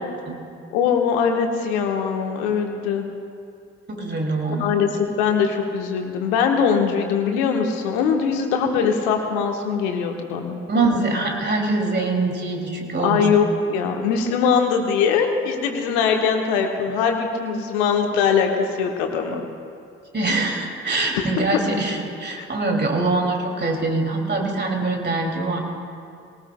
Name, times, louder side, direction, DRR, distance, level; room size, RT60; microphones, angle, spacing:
voice 1, 0.7-3.1 4.6-10.6 13.0-19.4 20.4-20.5 21.1-21.4 22.4-22.5, left 6 dB, 75° left, 3 dB, 1.3 m, -21 dB
voice 2, 3.9-4.7 10.7-13.3 20.1-25.6, right 3 dB, 30° right, 1 dB, 2.6 m, -23 dB
21.0 x 18.0 x 2.3 m, 2.4 s
figure-of-eight pair, 45°, 33 cm